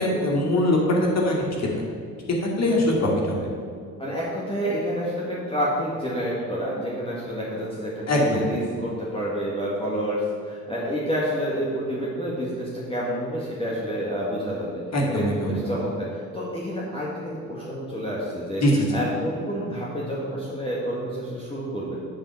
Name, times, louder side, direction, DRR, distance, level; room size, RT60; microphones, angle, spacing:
voice 1, 0.0-1.7 2.6-3.4 8.1-8.5 14.9-15.6 18.6-19.0, left 1 dB, 40° left, -2 dB, 2.2 m, -22 dB
voice 2, 4.0-14.8 15.1-18.6 18.9-21.9, equal, 15° left, -7 dB, 1.9 m, -29 dB
7.7 x 4.2 x 6.9 m, 2.2 s
hypercardioid pair, 60°, 39 cm